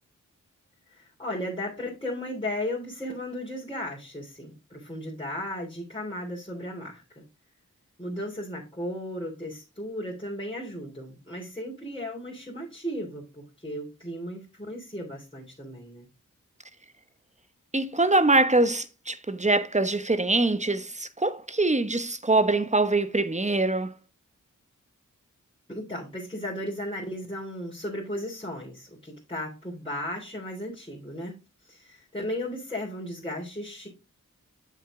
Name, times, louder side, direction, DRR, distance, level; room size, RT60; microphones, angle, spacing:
voice 1, 0.9-7.0 8.0-16.0 25.7-31.3 31.6-33.9, left 1 dB, 15° left, 3.3 m, -35 dB
voice 2, 17.7-23.9, right 2 dB, 20° right, 1.0 m, -23 dB
7.9 x 6.1 x 3.7 m
cardioid pair, 45°, 33 cm